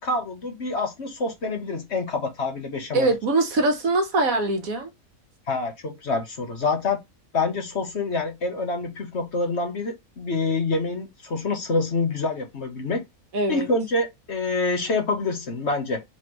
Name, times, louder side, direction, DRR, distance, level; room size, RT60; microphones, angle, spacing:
voice 1, 0.0-3.1 5.5-7.0 7.3-13.0 13.5-16.0, left 3 dB, 50° left, 1.2 m, -26 dB
voice 2, 2.9-4.9 13.3-13.7, right 2 dB, 65° right, 1.5 m, -22 dB
4.3 x 3.1 x 3.0 m
omnidirectional pair, 1.6 m